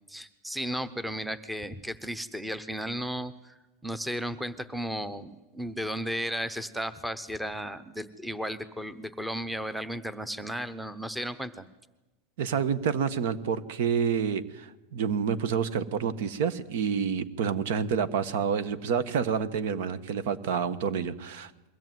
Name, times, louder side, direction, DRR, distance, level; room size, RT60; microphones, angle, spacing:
voice 1, 0.1-3.6 3.8-11.6, equal, ahead, 14 dB, 0.8 m, -34 dB
voice 2, 12.4-21.7, right 7 dB, 70° right, 15 dB, 1.4 m, -28 dB
22.5 x 16.5 x 9.4 m, 1.0 s
supercardioid pair, 150°, 0 cm